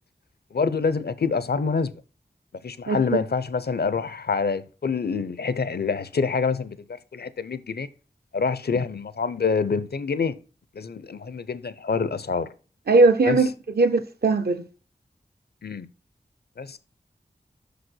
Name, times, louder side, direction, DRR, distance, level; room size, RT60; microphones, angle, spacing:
voice 1, 0.5-1.9 2.6-7.9 8.3-10.3 10.7-12.5 13.3-13.4 15.6-15.9 16.6-16.8, left 5 dB, 75° left, 0.6 m, -26 dB
voice 2, 2.9-3.2 12.9-13.5 13.8-14.6, right 3 dB, 70° right, 0.8 m, -19 dB
6.0 x 5.0 x 6.1 m
wide cardioid pair, 50°, 17 cm